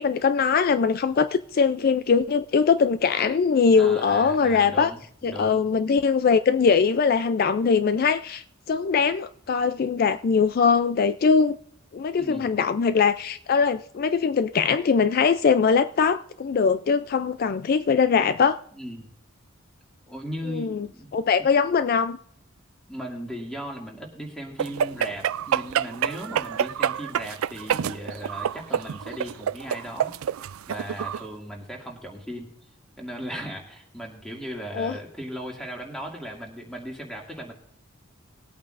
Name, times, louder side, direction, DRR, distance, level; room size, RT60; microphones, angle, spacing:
voice 1, 0.0-4.9 5.2-11.6 11.9-18.6 20.5-20.9 21.1-22.2 34.7-34.9, left 5 dB, 45° left, 0.3 m, -21 dB
voice 2, 3.8-5.6 12.2-12.5 18.7-19.1 20.1-21.1 22.9-30.1 30.7-32.5 33.0-37.5, equal, 5° left, 2.2 m, -37 dB
sound 1, 24.6-31.2, right 8 dB, 85° right, 0.4 m, -27 dB
21.0 x 8.6 x 2.5 m
head